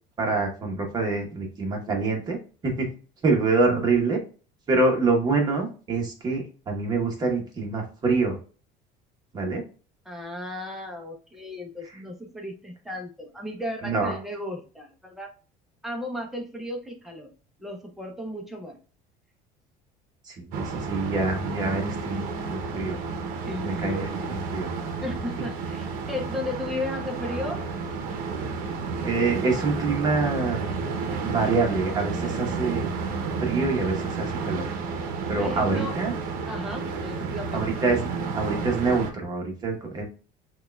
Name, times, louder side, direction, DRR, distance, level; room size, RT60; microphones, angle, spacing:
voice 1, 0.2-2.9 3.2-4.2 4.7-8.4 9.3-9.6 13.8-14.1 20.3-23.0 23.6-24.7 29.0-30.7 31.2-32.9 33.4-34.8 35.3-36.1 37.5-38.1 38.3-40.0, right 3 dB, 25° right, 1 dB, 0.9 m, -26 dB
voice 2, 10.1-15.3 15.8-17.3 17.6-18.8 23.4-24.4 25.0-27.7 35.3-36.0 36.5-37.9, left 1 dB, ahead, 1 dB, 0.6 m, -35 dB
sound 1, 20.5-39.1, right 4 dB, 60° right, 0.7 m, -31 dB
6.1 x 2.3 x 2.3 m, 0.37 s
cardioid pair, 170°, 17 cm